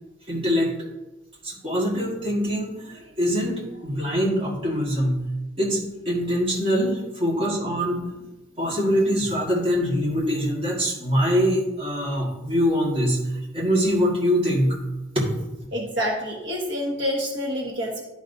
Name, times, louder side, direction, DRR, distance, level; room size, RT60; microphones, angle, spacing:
voice 1, 0.3-0.7 1.4-5.2 5.6-8.2 8.6-13.2 13.5-14.8 15.2-15.3, equal, 30° right, -4 dB, 1.7 m, -23 dB
voice 2, 15.7-18.0, equal, 70° right, -1 dB, 1.3 m, -27 dB
11.5 x 5.2 x 2.7 m, 1.0 s
head